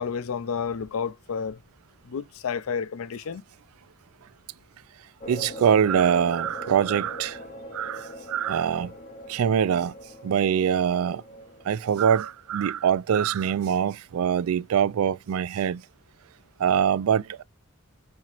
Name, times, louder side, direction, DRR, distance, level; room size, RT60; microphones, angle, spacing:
voice 1, 0.0-1.6 2.1-3.4, left 6 dB, 75° left, 0.4 m, -30 dB
sound 1, 5.2-12.7, equal, 35° left, 0.7 m, -41 dB
voice 2, 5.3-7.4 7.7-8.0 8.3-8.9 9.3-9.9 10.2-11.2 11.7-15.8 16.6-17.4, right 8 dB, 80° right, 0.4 m, -23 dB
4.5 x 2.8 x 2.4 m
head